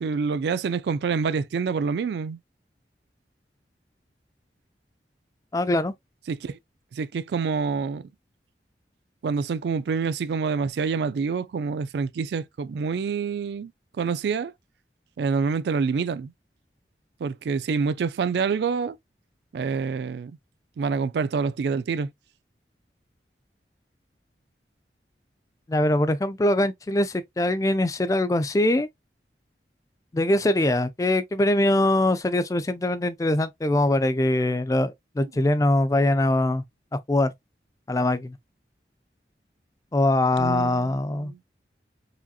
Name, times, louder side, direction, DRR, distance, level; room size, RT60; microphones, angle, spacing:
voice 1, 0.0-2.4 6.3-6.6 6.9-8.1 9.2-13.7 14.0-14.5 15.2-16.3 17.2-19.0 19.5-20.4 20.8-22.1 35.4-35.5 40.4-41.4, right 5 dB, 70° right, 0.3 m, -27 dB
voice 2, 5.5-5.9 25.7-28.9 30.1-36.6 37.1-37.3 37.9-38.4 39.9-41.3, left 1 dB, 20° left, 0.3 m, -22 dB
4.8 x 2.8 x 2.3 m
head